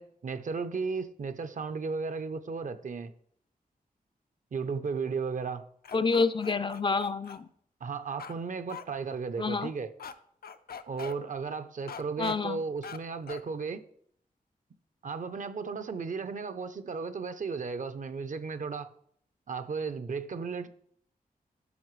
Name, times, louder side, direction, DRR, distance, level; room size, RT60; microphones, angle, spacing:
voice 1, 0.0-3.1 4.5-5.6 7.8-9.9 10.9-13.8 15.0-18.9 19.5-20.7, right 5 dB, 60° right, 0.6 m, -35 dB
sound 1, 5.8-7.4 8.2-8.4 8.7-8.8 10.0-10.1 10.4-11.1 11.9-12.4 12.8-13.0 13.3-13.4, left 7 dB, 85° left, 0.5 m, -42 dB
voice 2, 5.9-7.5 9.4-9.7 12.2-12.6, left 4 dB, 35° left, 0.4 m, -28 dB
12.0 x 6.5 x 3.1 m
wide cardioid pair, 145°, 15 cm